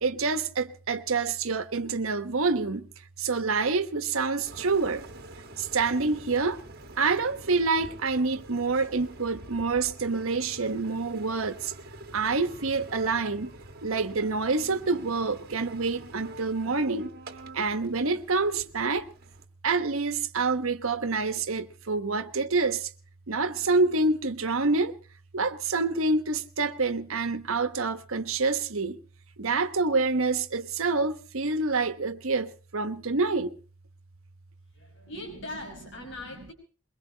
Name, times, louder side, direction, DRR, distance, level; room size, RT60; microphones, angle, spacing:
voice 1, 0.0-2.9 3.2-5.0 5.6-6.6 7.0-11.7 12.1-13.5 13.8-17.1 17.5-19.1 19.6-22.9 23.3-24.9 25.3-29.0 29.4-33.5, right 3 dB, 75° right, 1.2 m, -27 dB
Engine, 4.5-19.4, right 2 dB, 50° right, 1.5 m, -47 dB
voice 2, 34.7-36.5, left 1 dB, 60° left, 5.3 m, -40 dB
22.5 x 22.0 x 2.9 m
head